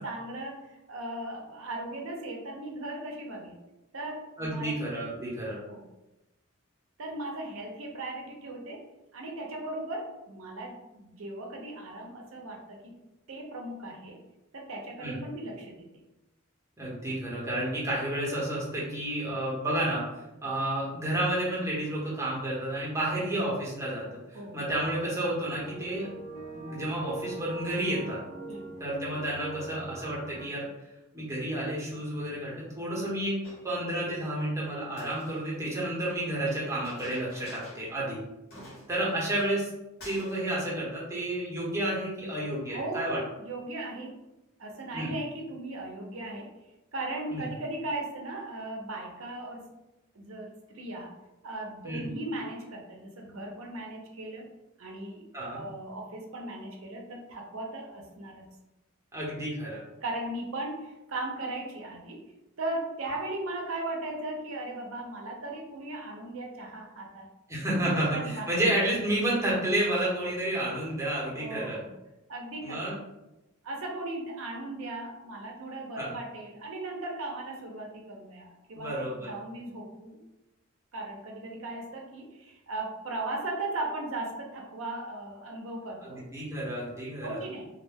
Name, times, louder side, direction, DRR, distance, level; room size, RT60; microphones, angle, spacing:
voice 1, 0.0-3.6 3.9-4.7 5.7-5.8 7.0-8.8 9.1-12.9 13.3-14.2 14.5-15.9 24.3-24.6 28.5-28.7 42.7-44.2 44.6-46.5 46.9-49.7 50.1-51.1 51.4-54.5 54.8-58.5 60.0-62.2 62.6-67.3 67.8-68.5 71.4-71.9 72.3-72.8 73.6-80.2 80.9-86.2 87.2-87.7, right 2 dB, 70° right, 1 dB, 0.6 m, -37 dB
voice 2, 4.4-5.6 15.0-15.2 16.8-26.1 26.5-28.2 28.8-30.7 31.1-33.4 33.6-38.2 38.9-39.7 40.0-43.2 44.9-45.1 47.3-47.5 51.8-52.1 55.3-55.6 59.1-59.8 67.5-71.8 72.6-72.9 75.9-76.1 78.8-79.3 86.0-87.4, right 1 dB, 15° right, -6 dB, 0.8 m, -31 dB
sound 1, 24.7-30.5, right 2 dB, 75° left, 0.7 m, -42 dB
Chink clink, 33.4-34.3 34.9-36.1 36.8-38.0 38.2-38.3 38.5-39.7 40.0-40.5, equal, 50° left, 1.0 m, -50 dB
2.2 x 2.1 x 3.4 m, 0.97 s
head